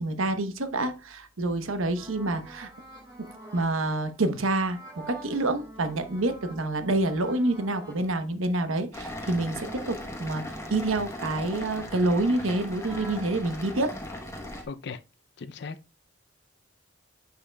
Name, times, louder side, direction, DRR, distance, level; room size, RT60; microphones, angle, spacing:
voice 1, 0.0-2.7 3.2-3.3 3.5-13.9, right 2 dB, 85° right, 0.9 m, -27 dB
sound 1, 1.9-8.1 8.5-13.3, right 2 dB, 20° right, 3.7 m, -47 dB
sound 2, 8.9-14.6, left 1 dB, 15° left, 1.0 m, -38 dB
voice 2, 14.7-15.0 15.4-16.0, left 5 dB, 55° left, 0.5 m, -38 dB
9.9 x 5.7 x 2.3 m
head